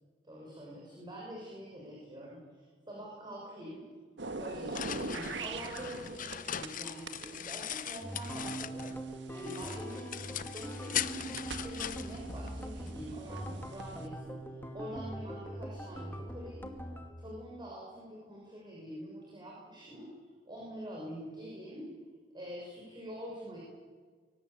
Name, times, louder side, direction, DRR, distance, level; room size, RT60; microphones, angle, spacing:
voice 1, 0.2-3.8 4.4-14.4 14.7-16.7 17.2-20.1 20.5-21.9 22.3-23.6, equal, 25° right, -4 dB, 7.0 m, -45 dB
sound 1, 4.2-6.7 7.1-10.0 10.6-14.1, right 3 dB, 75° right, 1.7 m, -42 dB
sound 2, 4.3-9.0 9.4-12.9, left 9 dB, 50° left, 0.9 m, -40 dB
sound 3, 8.0-17.1, right 1 dB, 10° left, 2.3 m, -42 dB
24.5 x 18.5 x 8.5 m, 1.5 s
head